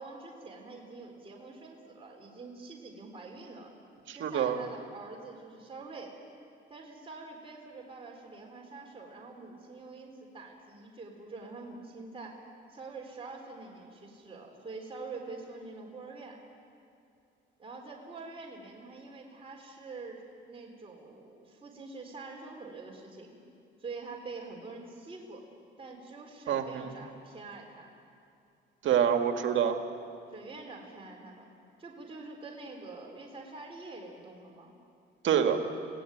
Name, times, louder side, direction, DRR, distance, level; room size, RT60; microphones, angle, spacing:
voice 1, 0.0-3.7 4.1-6.1 6.7-16.4 17.6-20.2 20.5-23.3 23.8-25.4 25.8-27.9 30.3-31.5 31.8-34.7, right 3 dB, 30° right, -1 dB, 4.2 m, -45 dB
voice 2, 4.1-4.6 26.5-26.9 28.8-29.8 35.2-35.6, right 8 dB, 75° right, 5 dB, 1.9 m, -26 dB
25.5 x 17.5 x 9.3 m, 2.5 s
cardioid pair, 90°, 20 cm